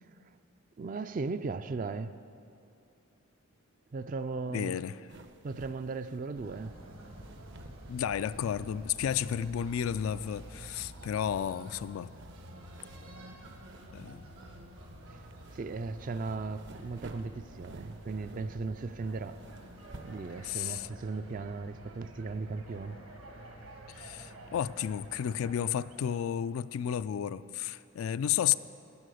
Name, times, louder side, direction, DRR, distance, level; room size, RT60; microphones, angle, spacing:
voice 1, 0.8-2.2 3.9-4.8 5.4-6.8 15.1-15.2 15.5-19.4 20.0-23.0, right 4 dB, 40° right, 0.3 m, -37 dB
voice 2, 4.5-5.0 7.9-12.1 13.9-14.2 20.4-20.9 23.9-28.5, left 9 dB, 75° left, 0.3 m, -32 dB
sound 1, 5.1-20.5, right 2 dB, 55° right, 0.7 m, -55 dB
sound 2, 6.3-26.2, right 1 dB, 75° right, 1.7 m, -49 dB
14.5 x 9.1 x 6.4 m
head